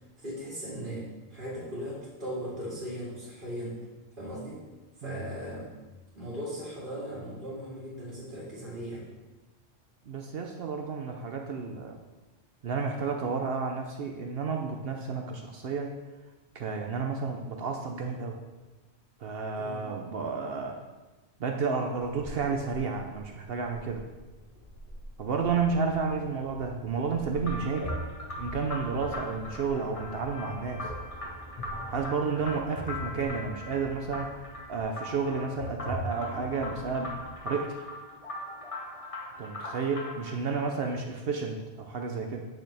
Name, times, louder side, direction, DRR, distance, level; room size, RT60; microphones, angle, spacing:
voice 1, 0.2-3.8 4.2-4.6 5.0-5.7 6.1-9.1 19.6-19.8, equal, 45° right, -8 dB, 2.4 m, -38 dB
voice 2, 10.1-12.0 12.6-15.9 16.5-18.4 19.2-20.8 21.4-24.0 25.2-27.9 28.4-30.9 31.9-34.3 34.7-37.1 37.4-37.8 39.4-42.4, right 5 dB, 60° right, 3 dB, 0.8 m, -31 dB
sound 1, 22.0-37.4, equal, 55° left, 1.8 m, -43 dB
sound 2, 27.4-40.4, left 1 dB, 30° left, 1.0 m, -40 dB
8.6 x 6.2 x 3.3 m, 1.1 s
omnidirectional pair, 1.2 m